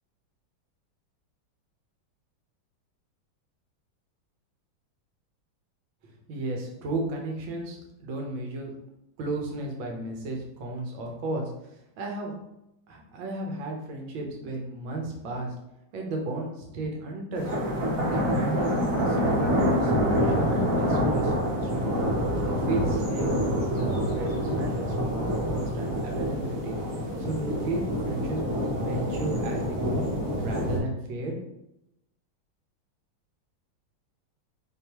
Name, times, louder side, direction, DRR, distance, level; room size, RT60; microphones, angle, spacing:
voice 1, 6.0-8.7 9.2-11.5 12.0-12.3 12.9-15.5 15.9-17.5 18.1-21.9 22.4-26.8 27.2-30.1 30.4-31.4, right 2 dB, 75° right, 0 dB, 1.6 m, -34 dB
sound 1, 17.4-30.8, equal, 50° right, 1.2 m, -27 dB
3.8 x 3.3 x 2.8 m, 0.83 s
omnidirectional pair, 2.2 m